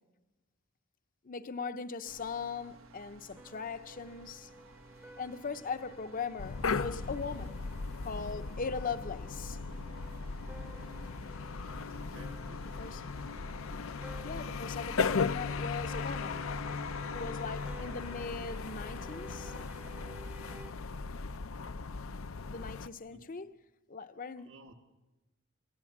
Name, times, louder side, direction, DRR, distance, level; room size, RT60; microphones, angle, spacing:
voice 1, 1.2-4.5 5.2-7.6 8.0-9.6 12.6-13.0 14.2-16.5 17.1-19.5 22.5-23.5 23.9-24.5, left 5 dB, 45° left, 0.7 m, -39 dB
sound 1, 2.0-20.0, right 2 dB, 90° right, 1.5 m, -57 dB
sound 2, 3.4-20.7, right 1 dB, 10° right, 0.8 m, -54 dB
sound 3, 6.4-22.9, left 4 dB, 85° left, 0.6 m, -37 dB
voice 2, 11.9-13.1 23.1-23.3 24.4-24.7, right 2 dB, 65° right, 1.7 m, -56 dB
28.0 x 15.5 x 7.2 m
head